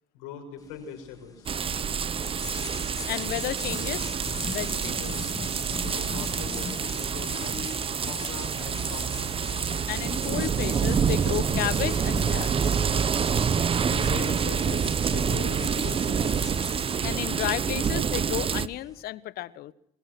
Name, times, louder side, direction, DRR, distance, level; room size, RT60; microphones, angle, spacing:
voice 1, 0.1-1.5 5.7-9.4 13.9-16.5, left 5 dB, 75° left, 4 dB, 6.1 m, -41 dB
sound 1, 0.6-19.0, left 3 dB, 20° left, 3.3 m, -40 dB
sound 2, 1.5-18.7, right 7 dB, 30° right, 1.0 m, -27 dB
voice 2, 3.1-4.1 4.5-5.3 9.9-12.8 17.0-19.7, left 14 dB, 60° left, 18 dB, 1.2 m, -33 dB
24.0 x 20.5 x 6.2 m, 0.73 s
hypercardioid pair, 75°, 18 cm